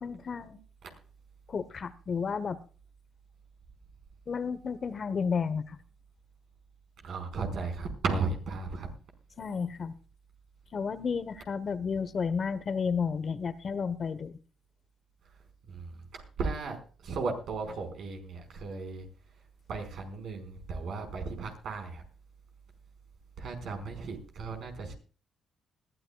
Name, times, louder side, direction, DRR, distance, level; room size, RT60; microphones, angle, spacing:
voice 1, 0.0-0.6 1.5-2.6 4.3-5.8 9.4-9.9 10.7-14.3, left 5 dB, 45° left, 14 dB, 1.0 m, -32 dB
voice 2, 7.0-8.9 15.7-19.1 19.7-22.0 23.4-24.9, right 4 dB, 70° right, 5 dB, 4.9 m, -35 dB
21.0 x 13.5 x 2.3 m, 0.37 s
cardioid pair, 90°, 0 cm